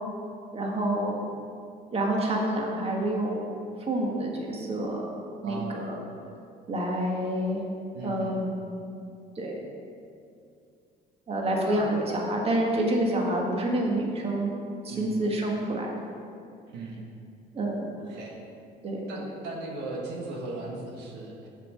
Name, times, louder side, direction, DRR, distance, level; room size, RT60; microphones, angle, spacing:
voice 1, 0.5-1.2 1.9-3.4 3.9-5.1 5.4-6.0 6.7-7.6 8.0-8.8 9.3-9.6 11.3-14.5 14.8-16.1 17.5-17.9 18.8-19.1, right 1 dB, 35° right, -1 dB, 1.6 m, -28 dB
voice 2, 5.4-6.0 7.9-8.4 11.6-11.9 14.9-15.3 16.7-17.1 18.0-18.4 19.1-21.5, right 2 dB, 85° right, -1 dB, 1.5 m, -37 dB
7.3 x 5.7 x 7.5 m, 2.5 s
cardioid pair, 110°, 17 cm